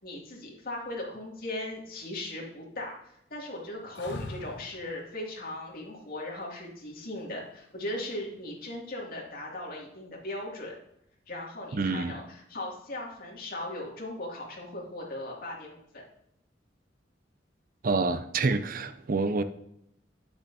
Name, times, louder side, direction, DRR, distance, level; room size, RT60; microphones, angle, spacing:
voice 1, 0.0-2.9 3.3-10.8 11.3-16.0, left 1 dB, 55° left, -2 dB, 2.5 m, -38 dB
sound 1, 4.0-4.9 7.5-8.1, left 2 dB, 70° left, 1.0 m, -41 dB
voice 2, 11.7-12.2 17.8-19.4, right 3 dB, 50° right, 11 dB, 0.5 m, -27 dB
9.8 x 7.0 x 2.8 m, 0.77 s
head